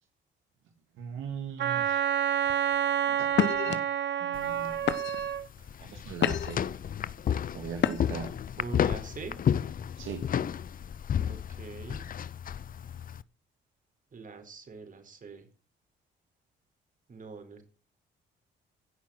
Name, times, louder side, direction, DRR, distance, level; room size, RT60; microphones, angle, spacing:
voice 1, 1.0-2.0 3.6-3.8 4.2-4.9 5.8-6.6 7.5-8.3 10.0-10.2, right 6 dB, 80° right, 4 dB, 2.2 m, -39 dB
Wind instrument woodwind instrument, 1.6-5.5, right 9 dB, 65° right, 1.3 m, -28 dB
sound 1, 2.5-2.8 3.3-3.8 4.4-4.6 4.9-5.4 5.9-6.7 7.8-8.3, left 9 dB, 65° left, 1.3 m, -29 dB
sound 2, 4.3-13.2, left 8 dB, 45° left, 0.6 m, -32 dB
voice 2, 8.6-9.4 11.2-12.0 14.1-15.4 17.1-17.6, right 4 dB, 40° right, 6 dB, 4.4 m, -43 dB
16.5 x 5.9 x 7.7 m, 0.37 s
cardioid pair, 90°, 20 cm